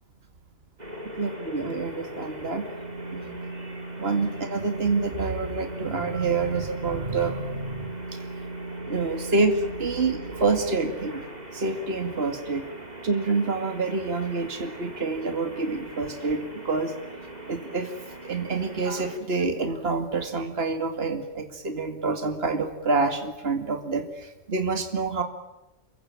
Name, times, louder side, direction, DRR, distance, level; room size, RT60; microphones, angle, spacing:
sound 1, 0.8-19.2, right 1 dB, 35° right, 4.2 m, -38 dB
voice 1, 1.2-2.6 3.1-3.4 4.0-8.2 8.9-11.2 11.5-12.7 13.0-16.9 17.5-17.9 18.2-25.2, right 3 dB, 50° right, 6 dB, 2.5 m, -27 dB
28.5 x 23.0 x 9.0 m, 0.97 s
omnidirectional pair, 1.3 m